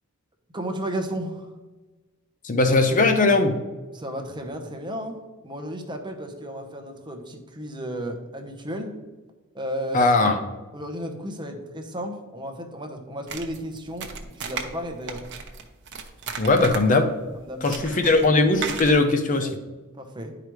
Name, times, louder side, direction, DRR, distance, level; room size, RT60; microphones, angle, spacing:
voice 1, 0.5-1.5 3.9-5.2 5.4-9.0 9.5-10.1 10.7-15.2 17.3-18.0 19.4-19.7 19.9-20.3, equal, 20° right, 4 dB, 0.9 m, -34 dB
voice 2, 2.4-3.6 9.9-10.4 16.4-17.1 17.6-19.6, left 2 dB, 35° left, 7 dB, 0.6 m, -19 dB
sound 1, 13.3-19.0, right 5 dB, 55° right, 0.8 m, -35 dB
10.5 x 4.9 x 3.1 m, 1.2 s
head